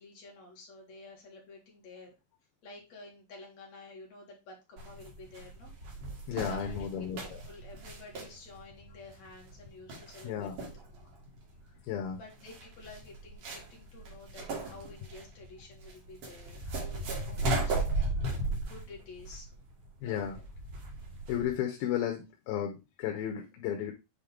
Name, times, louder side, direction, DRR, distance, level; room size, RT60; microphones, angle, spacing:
voice 1, 0.0-2.2 2.6-5.7 6.3-10.5 10.9-11.2 11.6-11.7 12.2-17.8 18.2-19.5 20.0-20.4, left 3 dB, 55° left, -1 dB, 2.7 m, -51 dB
sound 1, 4.8-21.5, right 2 dB, 60° right, 3.3 m, -37 dB
voice 2, 6.3-7.2 10.2-10.6 11.9-12.2 20.0-20.4 21.3-23.9, left 9 dB, 85° left, 3 dB, 2.7 m, -33 dB
8.5 x 3.6 x 3.6 m, 0.25 s
omnidirectional pair, 4.2 m